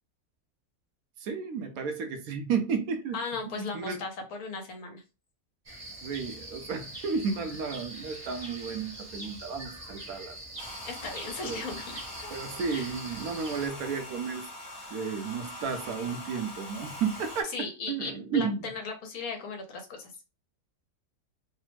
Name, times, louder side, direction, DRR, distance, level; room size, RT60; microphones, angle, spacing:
voice 1, 1.2-3.2 3.5-4.0 6.0-10.4 11.4-11.6 12.3-14.4 14.9-17.5 17.9-18.6, right 5 dB, 75° right, 1.0 m, -32 dB
voice 2, 3.1-5.0 10.8-12.3 12.7-12.9 17.5-20.1, left 4 dB, 75° left, 1.3 m, -37 dB
sound 1, 5.7-13.7, right 1 dB, 35° right, 0.8 m, -43 dB
Domestic sounds home sounds, 10.6-17.4, left 1 dB, 25° left, 0.7 m, -43 dB
3.3 x 2.1 x 3.0 m
omnidirectional pair, 1.6 m